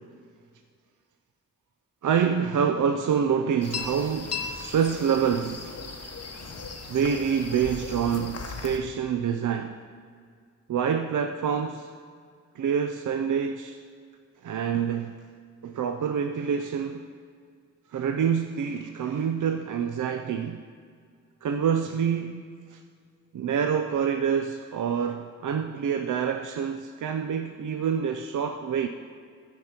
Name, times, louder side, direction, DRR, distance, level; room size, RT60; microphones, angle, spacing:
voice 1, 2.0-5.8 6.9-9.8 10.7-11.9 12.6-13.8 14.4-15.2 15.6-17.1 17.9-20.6 21.4-22.8 23.3-28.9, right 7 dB, 80° right, 6 dB, 0.5 m, -27 dB
sound 1, 3.6-8.8, left 5 dB, 55° left, 1.0 m, -37 dB
14.0 x 5.3 x 4.3 m, 2.1 s
wide cardioid pair, 110°, 30 cm